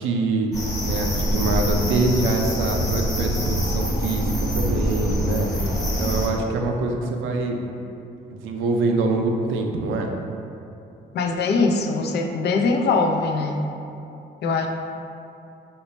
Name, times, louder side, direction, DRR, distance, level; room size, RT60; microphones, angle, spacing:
voice 1, 0.0-7.6 8.3-10.1, right 3 dB, 80° right, 2 dB, 0.4 m, -25 dB
sound 1, 0.5-6.3, equal, 15° left, 0.9 m, -24 dB
voice 2, 11.1-13.6 14.4-14.7, left 3 dB, 55° left, 3 dB, 0.4 m, -22 dB
3.1 x 2.2 x 4.0 m, 2.8 s
cardioid pair, 90°, 20 cm